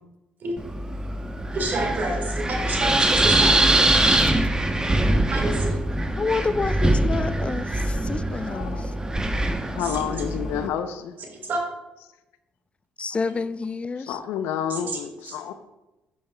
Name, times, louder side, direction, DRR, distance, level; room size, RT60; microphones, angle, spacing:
Wind, 0.6-10.7, right 1 dB, 20° right, 0.8 m, -23 dB
voice 1, 1.5-3.5 5.3-5.7 9.8-10.3 11.2-11.6 13.3-13.4 14.7-15.4, right 2 dB, 55° right, 1.7 m, -29 dB
voice 2, 6.2-8.8 13.0-14.2, left 4 dB, 30° left, 0.4 m, -28 dB
voice 3, 8.4-8.8 9.7-11.2 13.1-13.2 14.0-15.5, left 9 dB, 75° left, 0.5 m, -30 dB
10.5 x 6.3 x 2.2 m
hypercardioid pair, 55°, 4 cm